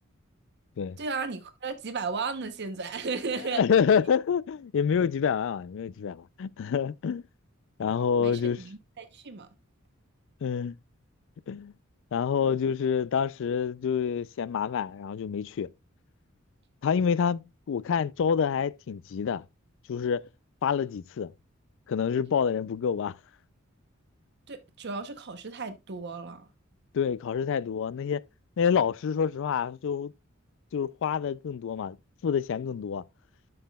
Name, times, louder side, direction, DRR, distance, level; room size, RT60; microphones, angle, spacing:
voice 1, 1.0-3.6 8.2-9.5 24.5-26.5, right 4 dB, 55° right, 0.8 m, -35 dB
voice 2, 3.4-7.2 7.8-8.6 10.4-10.8 11.5-11.7 12.1-15.7 16.8-19.4 19.9-20.2 20.6-21.3 21.9-23.2 26.9-28.2 28.6-30.1 30.7-32.0 32.2-33.0, left 7 dB, 65° left, 0.4 m, -27 dB
11.5 x 5.5 x 2.2 m
head